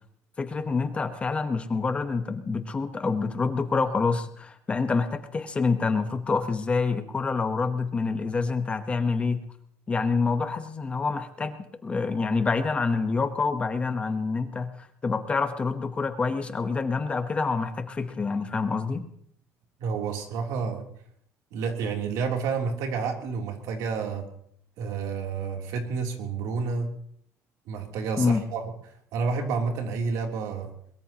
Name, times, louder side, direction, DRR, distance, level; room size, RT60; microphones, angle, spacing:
voice 1, 0.4-9.4 9.9-19.1 28.2-28.4, left 4 dB, 20° left, 8 dB, 1.1 m, -27 dB
voice 2, 19.8-20.9 21.5-24.3 24.8-26.9 27.7-28.6 29.1-30.7, right 5 dB, 80° right, 2 dB, 3.2 m, -29 dB
22.5 x 22.0 x 3.0 m, 0.67 s
cardioid pair, 170°, 6 cm